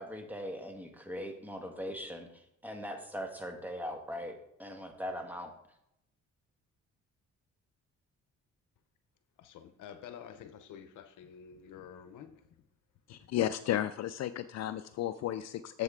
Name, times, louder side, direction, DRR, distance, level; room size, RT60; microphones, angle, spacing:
voice 1, 0.0-4.3 4.6-5.5, equal, 5° right, 1.5 m, -40 dB
voice 2, 9.4-12.5 13.2-13.3, left 8 dB, 80° left, 0.8 m, -49 dB
voice 3, 13.1-15.8, left 12 dB, 60° left, 0.4 m, -33 dB
7.8 x 7.5 x 3.7 m
cardioid pair, 90°, 30 cm